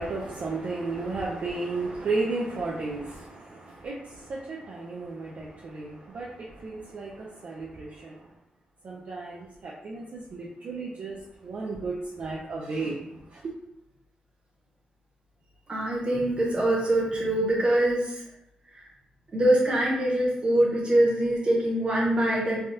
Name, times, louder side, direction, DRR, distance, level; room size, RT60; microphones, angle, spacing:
voice 1, 0.0-8.2 8.8-11.2 11.4-13.5, right 3 dB, 60° right, -4 dB, 0.5 m, -34 dB
voice 2, 15.7-18.2 19.3-22.6, right 1 dB, 40° right, -4 dB, 1.1 m, -23 dB
3.3 x 2.3 x 2.7 m, 0.86 s
cardioid pair, 90°, 3 cm